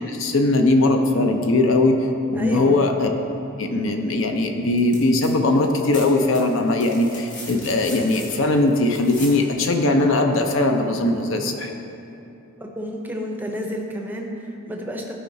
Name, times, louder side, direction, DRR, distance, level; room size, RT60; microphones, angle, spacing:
voice 1, 0.0-3.1 3.6-11.7, left 2 dB, 65° left, 4 dB, 0.6 m, -20 dB
voice 2, 2.3-2.8 12.6-15.1, equal, 10° right, 1 dB, 0.6 m, -31 dB
sound 1, 4.7-5.3 5.6-9.4 11.1-11.2, left 2 dB, 40° left, 1.4 m, -39 dB
13.5 x 4.7 x 2.7 m, 2.9 s
head